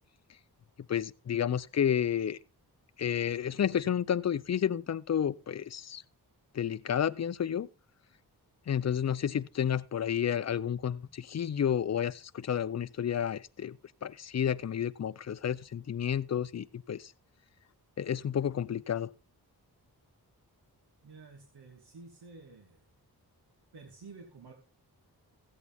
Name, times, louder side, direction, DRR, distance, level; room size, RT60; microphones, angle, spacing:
voice 1, 0.9-2.4 3.0-6.0 6.5-7.7 8.7-13.8 14.0-17.1 18.0-19.1, left 9 dB, 45° left, 0.5 m, -31 dB
voice 2, 21.0-22.9 23.7-24.5, right 4 dB, 85° right, 2.2 m, -51 dB
15.5 x 8.4 x 3.5 m
wide cardioid pair, 130°, 39 cm